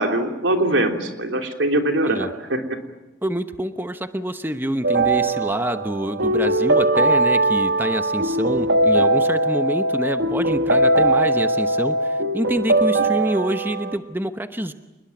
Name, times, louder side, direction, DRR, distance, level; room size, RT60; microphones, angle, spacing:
voice 1, 0.0-2.8, right 1 dB, 85° right, 4 dB, 3.1 m, -22 dB
voice 2, 3.2-14.7, right 1 dB, 10° right, 9 dB, 1.0 m, -26 dB
sound 1, 4.8-14.0, right 2 dB, 70° right, 1.3 m, -20 dB
28.0 x 20.5 x 9.3 m, 1.0 s
head